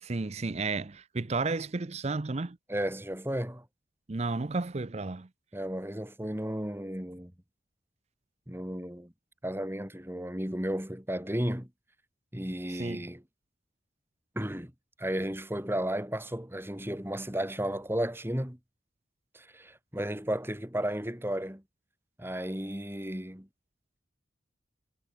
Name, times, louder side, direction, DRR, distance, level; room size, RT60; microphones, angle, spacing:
voice 1, 0.0-2.6 4.1-5.3 12.7-13.1, right 3 dB, 35° right, 0.6 m, -32 dB
voice 2, 2.7-3.6 5.5-7.3 8.5-9.1 9.4-11.7 12.3-13.2 14.3-14.7 15.0-18.6 19.3-21.6 22.2-23.5, equal, 10° right, 2.7 m, -33 dB
head